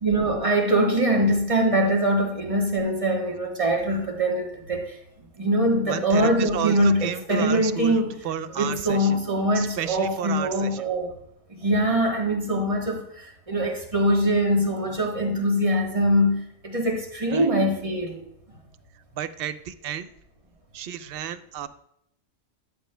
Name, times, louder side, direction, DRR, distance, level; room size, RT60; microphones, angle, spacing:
voice 1, 0.0-5.0 5.4-8.2 8.5-11.1 11.5-18.2, right 1 dB, 25° right, 1.5 m, -23 dB
voice 2, 5.8-8.0 8.2-9.2 9.6-10.9 17.3-17.5 19.2-20.1 20.7-21.7, right 9 dB, 60° right, 0.7 m, -32 dB
10.0 x 8.9 x 2.2 m
omnidirectional pair, 1.3 m